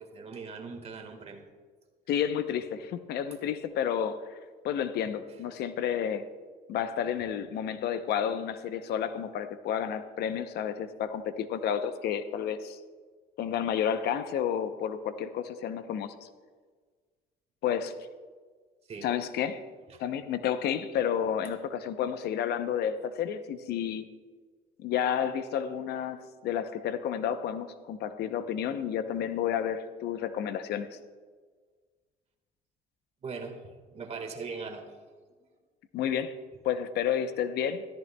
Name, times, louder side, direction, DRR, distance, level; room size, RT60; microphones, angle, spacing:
voice 1, 0.0-1.4 18.9-19.1 19.9-20.0 33.2-35.0, right 4 dB, 40° right, 5 dB, 1.5 m, -40 dB
voice 2, 2.1-4.4 4.6-6.3 6.7-12.8 13.4-16.3 17.6-17.9 19.0-19.6 20.0-24.1 24.8-31.0 35.9-36.4 36.6-37.8, left 8 dB, 75° left, 11 dB, 0.7 m, -31 dB
13.5 x 13.5 x 2.2 m, 1.5 s
cardioid pair, 110°, 17 cm